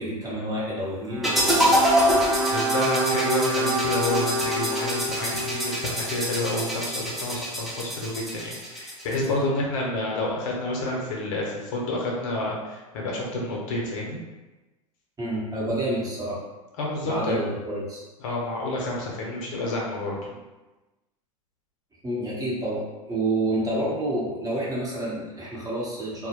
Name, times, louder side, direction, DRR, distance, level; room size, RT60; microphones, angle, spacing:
voice 1, 0.0-2.3 15.2-16.4 17.0-18.0 22.0-26.3, right 1 dB, 20° right, -6 dB, 0.9 m, -29 dB
sound 1, 1.1-7.3, right 1 dB, 70° right, 0.5 m, -29 dB
sound 2, 1.2-9.3, equal, ahead, 0.5 m, -26 dB
voice 2, 2.5-14.2 16.8-17.4 18.2-20.3, left 1 dB, 65° left, -2 dB, 0.7 m, -29 dB
2.1 x 2.1 x 2.9 m, 1.1 s
hypercardioid pair, 100°, 18 cm